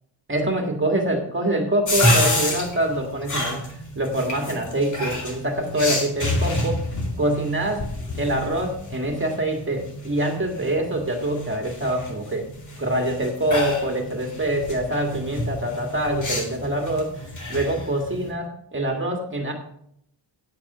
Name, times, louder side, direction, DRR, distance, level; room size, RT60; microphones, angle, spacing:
voice 1, 0.3-3.6 4.0-6.8 7.2-7.8 8.2-12.5 12.8-17.1 17.5-19.5, right 1 dB, 25° right, 3 dB, 2.0 m, -25 dB
sound 1, 1.9-18.3, left 1 dB, 40° left, 2.4 m, -29 dB
9.1 x 8.7 x 6.0 m, 0.71 s
wide cardioid pair, 120°, 45 cm